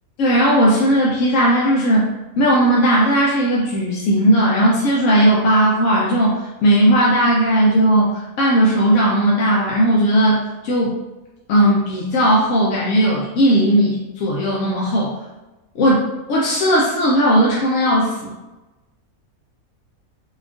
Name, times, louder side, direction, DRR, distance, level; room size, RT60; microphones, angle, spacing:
voice 1, 0.2-10.9 11.5-15.2 15.8-16.0 16.3-18.3, right 1 dB, 65° left, -5 dB, 0.9 m, -16 dB
4.3 x 2.3 x 2.4 m, 1.1 s
omnidirectional pair, 1.5 m